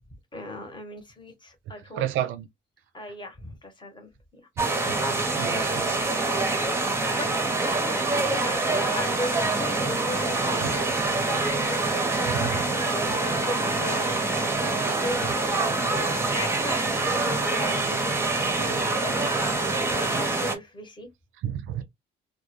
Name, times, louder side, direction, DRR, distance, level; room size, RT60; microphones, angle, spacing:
voice 1, 0.3-2.1 2.9-4.4 5.8-6.5 7.0-7.3 7.6-12.2 12.8-14.2 14.5-21.1, left 1 dB, 25° left, 1.0 m, -38 dB
voice 2, 2.0-2.5 4.6-5.0 5.4-5.9 12.3-12.6 21.4-21.8, right 11 dB, 80° right, 0.5 m, -30 dB
sound 1, 4.6-20.6, right 3 dB, 10° right, 0.6 m, -25 dB
2.1 x 2.1 x 3.0 m
cardioid pair, 90°, 20 cm